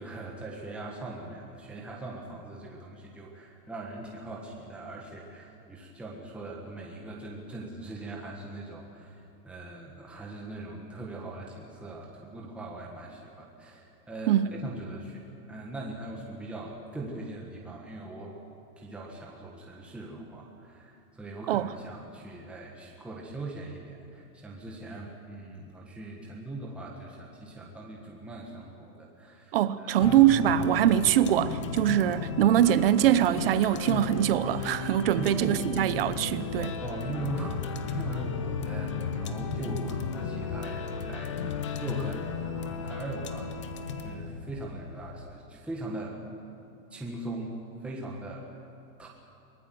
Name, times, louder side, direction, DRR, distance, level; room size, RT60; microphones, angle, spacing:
voice 1, 0.0-18.4 18.8-30.0 35.2-35.7 36.8-43.5 43.8-46.2 46.9-48.6 49.0-49.1, right 2 dB, ahead, 1.4 m, -40 dB
voice 2, 29.5-36.8, right 11 dB, 35° right, 0.7 m, -23 dB
sound 1, 30.0-45.3, left 6 dB, 20° left, 0.5 m, -35 dB
23.0 x 19.0 x 7.7 m
supercardioid pair, 170°, 48 cm